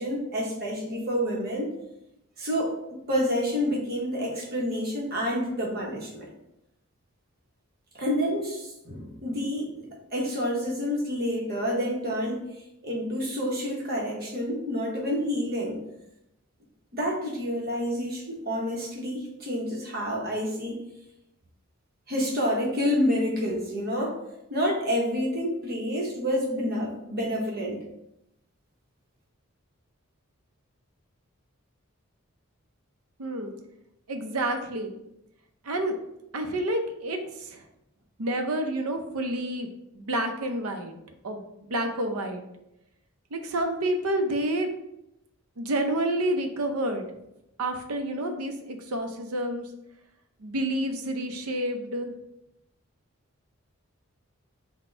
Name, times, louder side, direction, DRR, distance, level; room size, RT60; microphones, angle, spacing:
voice 1, 0.0-1.7 2.4-6.3 7.9-12.4 12.8-15.8 16.9-20.8 22.1-24.2 24.5-27.8, equal, 45° right, -1 dB, 1.0 m, -28 dB
voice 2, 33.2-33.5 34.1-34.9 35.6-36.0 36.3-37.2 37.5-37.6 38.2-39.7 39.9-40.9 41.2-42.4 43.3-44.7 45.6-47.0 47.6-49.7 50.4-52.1, right 1 dB, 85° right, 5 dB, 0.6 m, -29 dB
4.2 x 2.2 x 4.4 m, 0.84 s
head